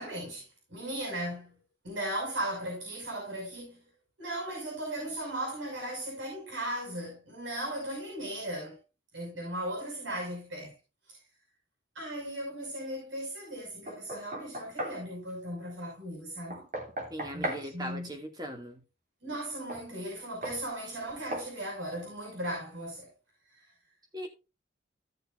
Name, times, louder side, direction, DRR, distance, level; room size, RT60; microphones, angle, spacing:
voice 1, 0.0-1.6 1.8-3.8 4.2-8.8 9.1-10.7 11.1-11.2 11.9-16.6 17.3-18.2 19.2-23.1, right 1 dB, 90° right, 6.1 m, -37 dB
Knock, 13.9-15.0 16.5-17.7 19.7-19.9 20.4-20.6 21.3-21.5, right 1 dB, 40° right, 3.0 m, -36 dB
voice 2, 17.1-18.8 24.1-24.3, equal, 20° right, 2.2 m, -39 dB
16.0 x 6.8 x 2.5 m
head